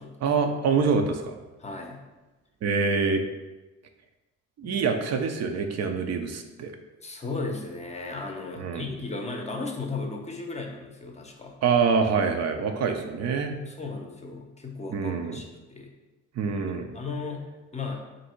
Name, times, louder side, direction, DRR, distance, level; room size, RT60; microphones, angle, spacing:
voice 1, 0.2-1.4 2.6-3.2 4.6-6.7 8.6-8.9 11.6-13.5 14.9-15.4 16.4-16.9, right 5 dB, 60° right, 5 dB, 0.5 m, -25 dB
voice 2, 1.6-2.0 4.6-4.7 7.0-11.5 13.7-15.9 16.4-16.6 16.9-17.5 17.7-18.0, left 3 dB, 20° left, 2 dB, 0.6 m, -35 dB
3.5 x 2.7 x 4.3 m, 1.1 s
cardioid pair, 90°, 30 cm